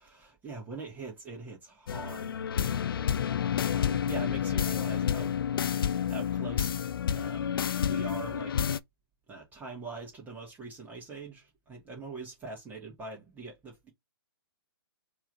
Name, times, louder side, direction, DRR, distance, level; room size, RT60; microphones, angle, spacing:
voice 1, 0.4-2.4 3.3-5.3 6.1-6.7 7.1-8.5 9.3-13.9, right 3 dB, 15° right, 1.9 m, -42 dB
sound 1, 1.9-8.8, left 8 dB, 60° left, 0.5 m, -29 dB
4.6 x 3.2 x 2.5 m
figure-of-eight pair, 130°, 13 cm